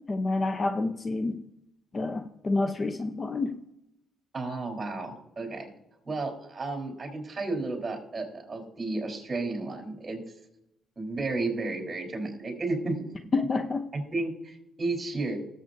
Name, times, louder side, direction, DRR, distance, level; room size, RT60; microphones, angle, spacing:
voice 1, 0.1-1.4 1.9-3.6 13.3-13.8, left 3 dB, 35° left, 0.7 m, -28 dB
voice 2, 4.3-5.7 6.0-10.2 11.0-13.1 13.9-15.4, right 3 dB, 30° right, 4.0 m, -32 dB
20.0 x 7.6 x 2.7 m
cardioid pair, 90°, 0 cm